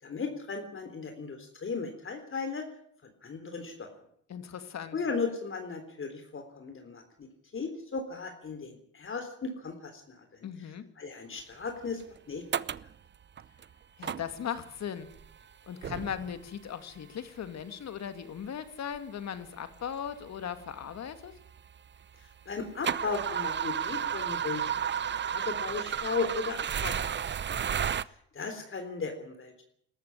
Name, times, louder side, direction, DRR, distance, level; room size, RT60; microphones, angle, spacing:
voice 1, 0.0-2.6 3.0-3.9 4.9-7.3 7.5-10.5 11.0-12.0 12.3-12.4 22.2-24.7 25.0-27.6 28.0-29.6, left 4 dB, 45° left, 5 dB, 3.7 m, -36 dB
voice 2, 4.3-5.0 10.4-10.9 14.0-15.1 15.7-21.4, left 8 dB, 60° left, 10 dB, 2.3 m, -38 dB
sound 1, 12.0-12.1 12.5-12.9 13.4-13.6 14.0-14.6 15.1-15.4 15.8-16.5 17.4-17.5 18.4-18.5 18.9-19.0 19.7-19.8 20.1-22.0 22.3-28.0, right 8 dB, 40° right, 0.7 m, -32 dB
19.5 x 14.0 x 9.9 m, 0.67 s
cardioid pair, 90°, 30 cm